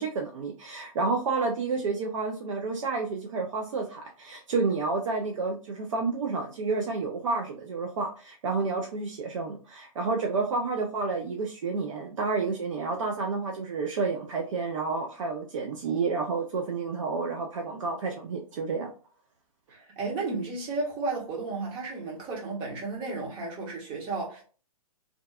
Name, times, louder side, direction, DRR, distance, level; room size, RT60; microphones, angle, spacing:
voice 1, 0.0-18.9, right 4 dB, 60° right, 0.5 m, -30 dB
voice 2, 19.7-24.4, right 3 dB, 25° right, 1.0 m, -33 dB
2.5 x 2.3 x 2.3 m
figure-of-eight pair, 120°, 19 cm